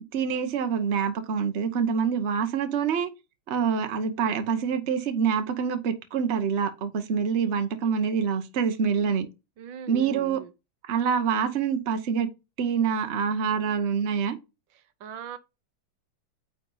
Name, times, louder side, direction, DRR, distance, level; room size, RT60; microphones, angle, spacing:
voice 1, 0.1-3.1 3.5-9.3 9.9-10.4 10.9-12.3 12.6-14.4, right 6 dB, 45° right, 1.0 m, -26 dB
voice 2, 9.6-10.5 14.7-15.4, right 8 dB, 80° right, 1.5 m, -40 dB
8.9 x 3.9 x 3.9 m
omnidirectional pair, 2.1 m